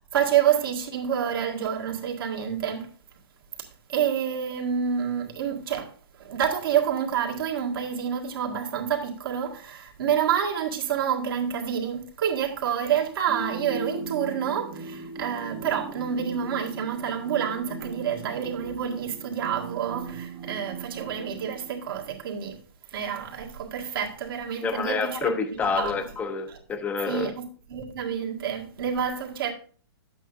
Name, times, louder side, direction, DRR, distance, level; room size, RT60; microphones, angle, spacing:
voice 1, 0.1-2.9 3.6-22.6 22.9-25.3 25.6-25.9 26.5-26.6 27.1-29.5, right 8 dB, 65° right, 1.9 m, -28 dB
sound 1, 13.3-22.0, right 4 dB, 20° right, 1.0 m, -39 dB
voice 2, 24.6-27.3, left 5 dB, 10° left, 0.7 m, -28 dB
10.0 x 8.2 x 2.6 m
hypercardioid pair, 150°, 13 cm